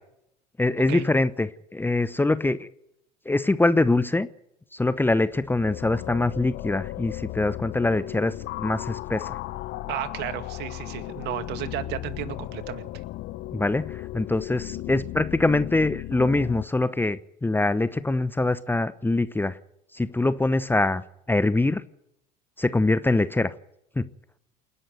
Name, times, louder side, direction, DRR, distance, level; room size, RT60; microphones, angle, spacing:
voice 1, 0.6-2.7 3.2-4.3 4.7-9.4 13.5-19.6 19.9-21.0 21.3-21.8 22.6-23.5 24.0-24.1, left 2 dB, 10° left, 15 dB, 1.0 m, -24 dB
sound 1, 5.2-16.6, left 17 dB, 50° left, 1.0 m, -36 dB
voice 2, 9.9-12.9, right 11 dB, 55° right, 10 dB, 2.2 m, -33 dB
28.5 x 11.0 x 9.3 m, 0.78 s
figure-of-eight pair, 65°, 21 cm